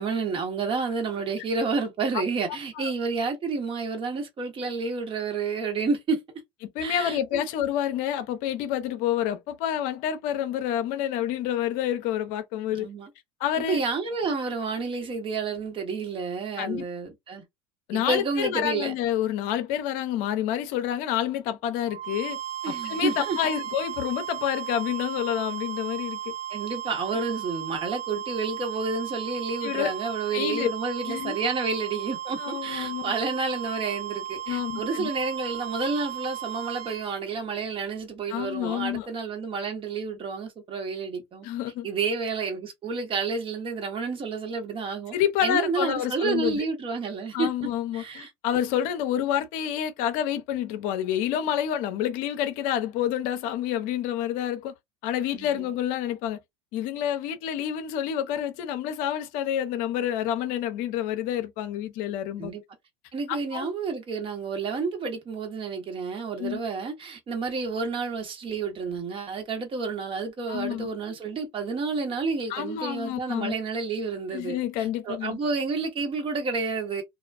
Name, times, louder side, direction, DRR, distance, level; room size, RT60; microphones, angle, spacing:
voice 1, 0.0-6.2 6.8-7.4 12.7-13.1 13.7-17.4 17.9-18.9 22.6-23.4 26.5-41.5 41.8-45.1 45.4-47.5 47.9-48.3 55.3-55.7 62.4-62.6 63.1-77.0, right 4 dB, 35° right, 1.2 m, -30 dB
voice 2, 6.7-12.9 13.4-13.8 16.6-16.8 17.9-22.4 22.7-26.3 29.6-29.9 30.3-30.7 31.0-31.4 32.4-33.1 34.5-35.1 38.3-39.1 41.4-41.9 45.1-46.6 47.3-54.7 55.0-56.4 56.7-62.5 63.3-63.7 66.4-66.6 70.5-70.9 72.5-73.5 74.3-75.4, left 10 dB, 65° left, 0.6 m, -28 dB
sound 1, 21.9-37.2, right 11 dB, 55° right, 0.5 m, -35 dB
2.4 x 2.2 x 2.4 m
hypercardioid pair, 90°, 15 cm